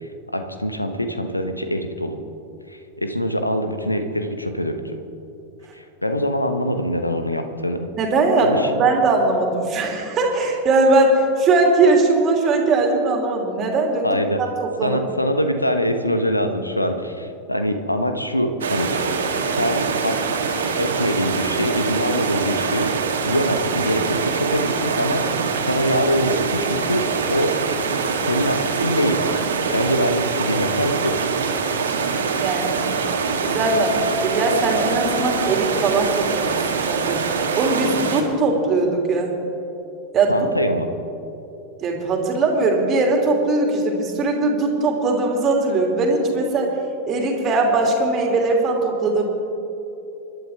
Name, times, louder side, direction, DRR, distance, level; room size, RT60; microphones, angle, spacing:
voice 1, 0.0-2.2 2.7-5.0 5.7-7.9 8.4-8.9 14.0-14.4 14.8-18.9 19.6-20.2 20.8-27.0 27.3-27.5 28.1-29.2 29.7-31.2 40.3-40.9, equal, 85° left, 7 dB, 1.2 m, -24 dB
voice 2, 8.0-14.1 14.4-15.0 32.4-33.0 33.4-37.3 37.6-39.3 40.1-40.4 41.8-46.7 47.1-49.2, right 3 dB, 30° right, 1 dB, 2.7 m, -20 dB
sound 1, 18.6-38.2, right 5 dB, 65° right, 1.8 m, -24 dB
26.5 x 11.5 x 3.5 m, 2.9 s
figure-of-eight pair, 90°, 0 cm